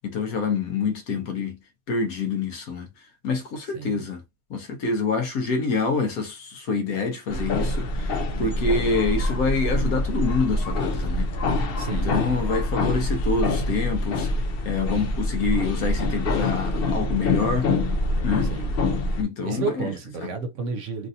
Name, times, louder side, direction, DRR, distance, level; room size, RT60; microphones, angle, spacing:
voice 1, 0.1-1.6 1.9-2.9 3.2-4.2 4.5-11.3 11.9-14.3 14.6-17.7 18.2-18.5 19.2-19.9, left 4 dB, 80° left, 1.3 m, -26 dB
voice 2, 3.7-4.1 11.8-12.4 18.5-18.8 19.4-21.1, right 4 dB, 65° right, 0.9 m, -31 dB
sound 1, 7.3-19.2, left 2 dB, 60° left, 0.6 m, -25 dB
3.2 x 2.5 x 2.6 m
omnidirectional pair, 1.5 m